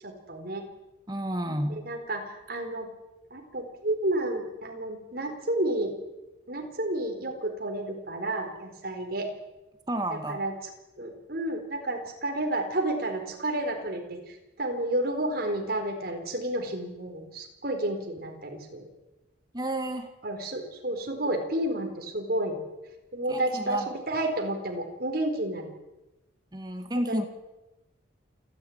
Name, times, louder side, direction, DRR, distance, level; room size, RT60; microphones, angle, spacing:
voice 1, 0.0-0.6 1.7-2.9 3.3-5.9 6.5-9.3 10.1-10.5 11.0-18.9 20.2-22.6 23.1-25.7 27.1-27.3, right 1 dB, 50° right, 3 dB, 4.4 m, -31 dB
voice 2, 1.1-1.9 9.9-10.4 19.5-20.1 23.3-23.9 26.5-27.3, right 1 dB, 20° right, 6 dB, 2.1 m, -31 dB
28.0 x 10.5 x 9.7 m, 0.99 s
head